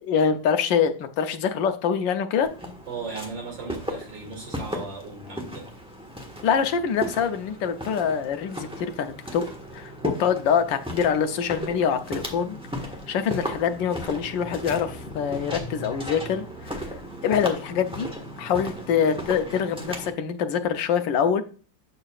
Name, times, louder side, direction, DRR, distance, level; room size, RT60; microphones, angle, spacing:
voice 1, 0.0-2.5 6.4-9.4 9.7-9.9 10.2-12.6 13.1-16.8 17.2-18.1 18.4-21.4, left 7 dB, 75° left, 1.5 m, -25 dB
Walk footsteps, 2.4-20.1, equal, 5° right, 1.1 m, -36 dB
voice 2, 2.9-5.6, right 4 dB, 70° right, 3.2 m, -37 dB
7.7 x 6.7 x 2.4 m
omnidirectional pair, 2.0 m